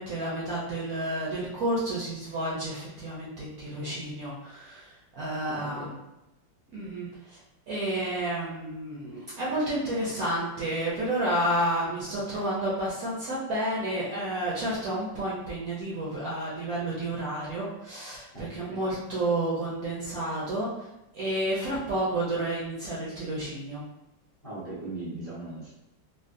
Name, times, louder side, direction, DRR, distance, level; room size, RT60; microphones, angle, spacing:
voice 1, 0.0-5.9 6.7-7.4 7.7-20.9 21.1-23.8, right 1 dB, 65° right, -6 dB, 0.9 m, -30 dB
voice 2, 5.4-5.9 18.3-18.8 24.4-25.7, right 2 dB, 35° left, -10 dB, 0.6 m, -39 dB
3.7 x 2.2 x 2.5 m, 0.95 s
omnidirectional pair, 2.1 m